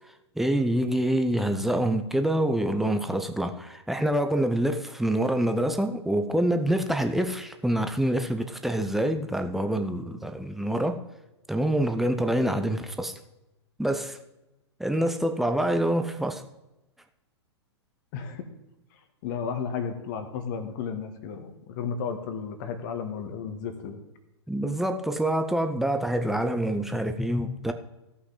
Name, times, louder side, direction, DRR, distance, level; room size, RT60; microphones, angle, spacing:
voice 1, 0.4-11.0 11.5-13.1 13.8-14.2 14.8-16.4 24.5-27.7, right 1 dB, ahead, 0.6 m, -26 dB
voice 2, 18.1-18.5 19.2-24.0, left 6 dB, 45° left, 1.4 m, -33 dB
16.0 x 5.9 x 3.9 m
figure-of-eight pair, 105°, 15 cm